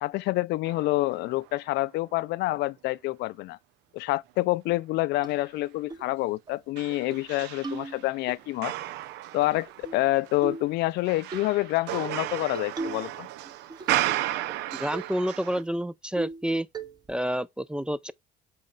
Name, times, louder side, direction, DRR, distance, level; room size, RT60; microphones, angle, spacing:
voice 1, 0.0-3.6 3.9-8.7 9.3-13.3, left 18 dB, 80° left, 0.4 m, -27 dB
sound 1, 0.7-1.5 2.0-2.1 5.3-5.4 6.8-15.6, right 14 dB, 85° right, 0.6 m, -34 dB
sound 2, 5.2-5.3 5.9-6.1 6.5-6.6 6.9-7.3 7.6-8.4 9.4-10.0 10.4-10.7 11.3-11.5 12.5-13.1 13.4-14.1 14.5-14.6 14.9-15.1 15.6-15.7 16.2-16.5 16.7-17.2, right 3 dB, 25° right, 1.1 m, -37 dB
voice 2, 14.8-16.7 17.1-18.1, equal, 5° right, 0.4 m, -29 dB
7.4 x 4.3 x 3.9 m
cardioid pair, 110°, 17 cm